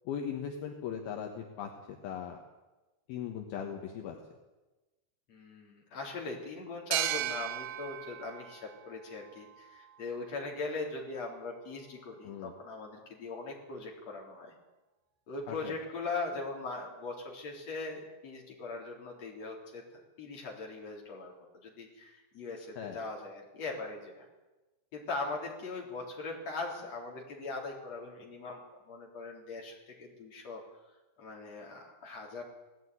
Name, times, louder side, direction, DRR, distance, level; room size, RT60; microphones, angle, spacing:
voice 1, 0.0-2.4 3.1-4.2 12.2-12.5 15.5-15.7 22.8-23.0, left 8 dB, 70° left, 3 dB, 3.2 m, -39 dB
voice 2, 5.3-14.5 15.3-19.8 20.2-21.3 21.6-24.3 24.9-30.6 31.2-32.4, left 3 dB, 40° left, -1 dB, 4.8 m, -40 dB
sound 1, 6.9-10.3, right 12 dB, 85° right, 3.2 m, -37 dB
18.5 x 15.0 x 9.6 m, 1.1 s
omnidirectional pair, 4.6 m